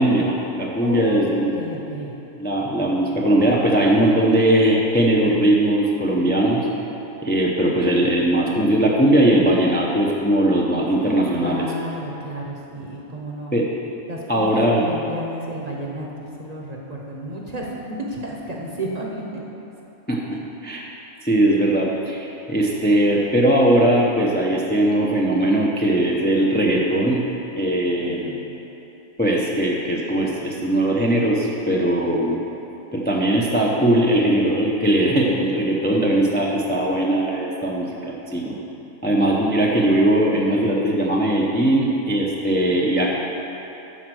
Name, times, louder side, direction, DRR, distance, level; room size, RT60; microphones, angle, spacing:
voice 1, 0.0-1.5 2.3-6.7 7.2-11.7 13.5-13.7 14.3-14.8 20.1-20.8 21.2-27.2 27.6-28.3 29.2-32.4 32.9-38.6 39.0-43.1, right 1 dB, 15° left, -3 dB, 0.3 m, -19 dB
voice 2, 0.8-2.1 10.9-13.5 14.1-19.4 20.3-20.4 28.0-28.4, right 1 dB, 35° right, -2 dB, 0.8 m, -32 dB
10.5 x 4.3 x 6.2 m, 3.0 s
omnidirectional pair, 1.6 m